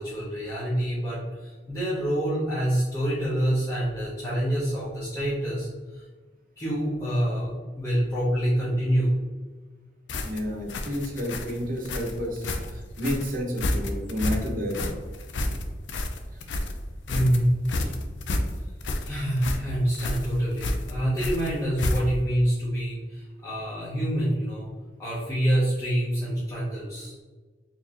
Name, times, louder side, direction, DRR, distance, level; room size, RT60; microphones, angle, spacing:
voice 1, 0.0-6.0 6.6-9.2 17.1-17.5 17.8-17.9 19.0-24.7 25.0-27.1, equal, 20° left, -11 dB, 1.1 m, -26 dB
sound 1, 10.1-22.3, left 1 dB, 85° left, 0.5 m, -30 dB
voice 2, 10.2-14.9, equal, 50° right, 0 dB, 0.9 m, -30 dB
4.3 x 3.2 x 2.7 m, 1.3 s
head